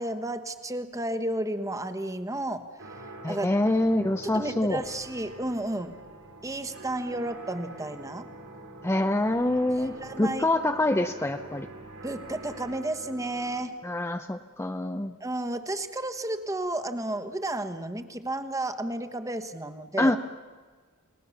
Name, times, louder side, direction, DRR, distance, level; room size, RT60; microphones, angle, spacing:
voice 1, 0.0-2.7 3.3-3.5 4.2-6.0 6.4-8.3 9.8-10.4 12.0-13.7 15.2-20.1, right 1 dB, 15° right, 9 dB, 1.3 m, -32 dB
sound 1, 2.8-13.6, right 2 dB, 75° right, 5.1 m, -45 dB
voice 2, 3.2-4.8 8.8-11.7 13.8-15.1 20.0-20.2, left 1 dB, 10° left, 6 dB, 0.7 m, -26 dB
29.5 x 19.0 x 7.2 m, 1.5 s
head